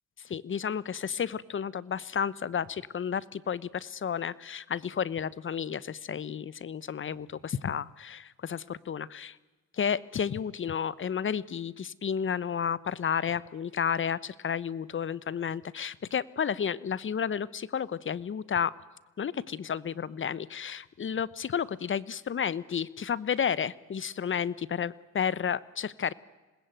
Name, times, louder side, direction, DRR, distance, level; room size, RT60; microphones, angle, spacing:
voice 1, 0.2-9.4 9.7-18.7 19.2-26.1, left 7 dB, 40° left, 20 dB, 1.0 m, -32 dB
26.5 x 20.0 x 9.3 m, 1.2 s
cardioid pair, 90°, 30 cm